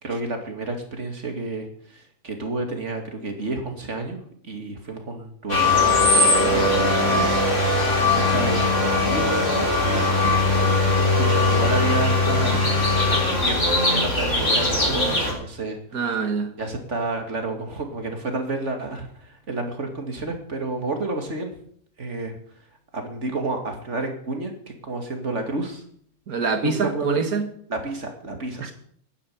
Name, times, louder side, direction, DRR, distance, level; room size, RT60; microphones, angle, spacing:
voice 1, 0.0-4.2 4.4-7.4 7.7-15.8 16.6-21.5 22.0-22.4 22.9-24.5 24.8-25.8 26.6-27.2 27.7-28.7, right 2 dB, 55° right, 2.8 m, -30 dB
City Sounds - Leafblower & Birds, 5.5-15.3, left 2 dB, 55° left, 4.3 m, -20 dB
voice 2, 14.9-15.3 15.9-16.5 26.3-27.5 28.6-28.7, right 4 dB, 90° right, 2.2 m, -25 dB
11.5 x 10.0 x 8.7 m
omnidirectional pair, 1.5 m